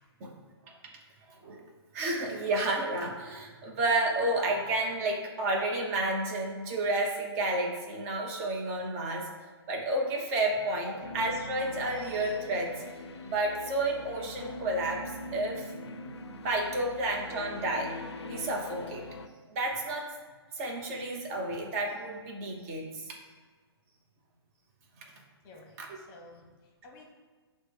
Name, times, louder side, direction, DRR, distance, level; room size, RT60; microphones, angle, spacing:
voice 1, 1.3-1.6 1.9-9.3 9.7-12.8 13.2-15.0 15.3-15.7 16.4-17.9 18.2-19.0 19.5-20.1 20.5-23.1 25.8-25.9, right 2 dB, 35° right, 0 dB, 0.8 m, -31 dB
sound 1, 11.0-19.3, left 2 dB, 85° left, 0.4 m, -43 dB
voice 2, 25.4-27.1, left 2 dB, 25° left, 1 dB, 0.8 m, -53 dB
5.8 x 2.1 x 3.3 m, 1.4 s
hypercardioid pair, 140°, 14 cm